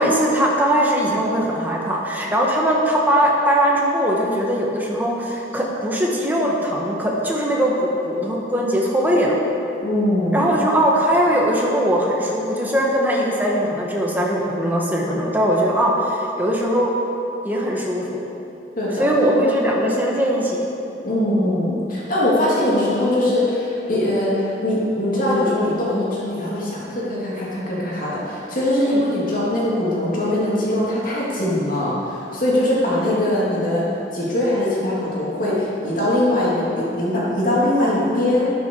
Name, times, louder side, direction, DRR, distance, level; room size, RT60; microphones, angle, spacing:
voice 1, 0.0-9.3 10.3-16.9 17.4-18.2 19.0-20.6 28.8-29.0 33.2-33.3, equal, 10° right, -3 dB, 1.6 m, -20 dB
voice 2, 9.8-10.5 18.7-19.1 21.0-33.9 34.1-38.5, left 1 dB, 50° left, -7 dB, 3.0 m, -21 dB
12.0 x 11.0 x 4.8 m, 2.8 s
head